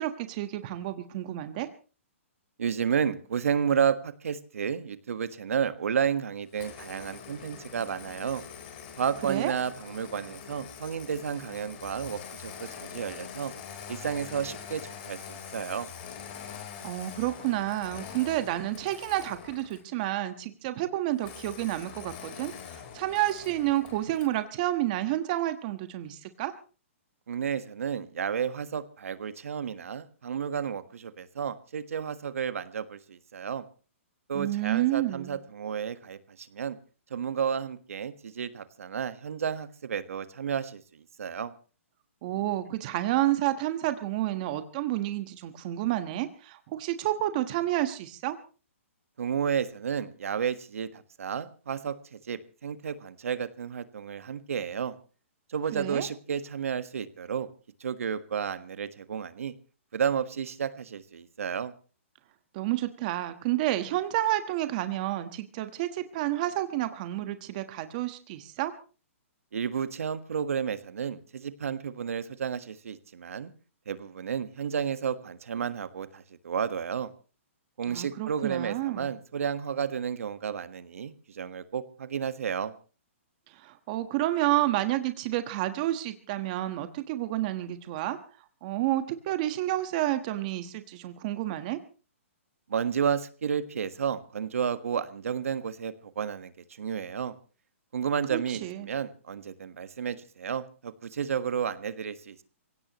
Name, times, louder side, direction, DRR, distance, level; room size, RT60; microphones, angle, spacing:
voice 1, 0.0-1.7 9.3-9.5 16.8-26.5 34.3-35.4 42.2-48.4 55.7-56.1 62.5-68.7 77.9-79.1 83.5-88.2 88.6-91.8 98.3-98.9, right 15 dB, 35° right, 9 dB, 1.3 m, -30 dB
voice 2, 2.6-8.4 9.0-13.5 13.9-15.9 27.3-33.6 34.3-36.8 37.1-41.5 49.2-54.9 55.5-57.5 57.8-59.5 59.9-61.7 69.5-73.5 73.9-77.1 77.8-82.7 92.7-97.3 97.9-102.4, right 7 dB, 80° right, 11 dB, 1.5 m, -32 dB
Engine starting, 6.5-19.9 21.2-24.4, left 7 dB, 40° left, 4.2 m, -44 dB
26.0 x 17.0 x 3.1 m, 0.36 s
hypercardioid pair, 155°, 7 cm